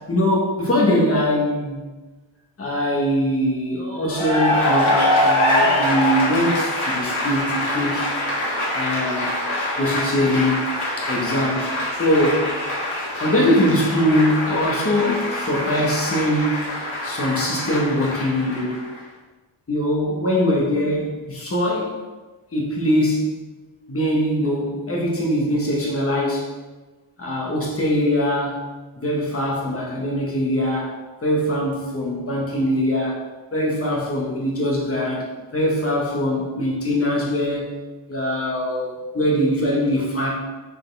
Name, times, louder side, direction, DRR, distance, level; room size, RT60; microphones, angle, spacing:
voice 1, 0.1-1.8 2.6-8.1 8.7-9.3 9.8-10.6 11.0-12.6 13.2-16.7 17.0-18.9 19.7-22.0 22.5-23.3 23.9-26.5 27.2-28.7 29.0-33.2 33.5-37.7 38.1-40.3, equal, 30° left, -3 dB, 1.3 m, -22 dB
Cheering / Applause, 4.0-19.0, left 1 dB, 85° left, 2.0 m, -24 dB
6.5 x 4.3 x 3.4 m, 1.2 s
wide cardioid pair, 170°, 48 cm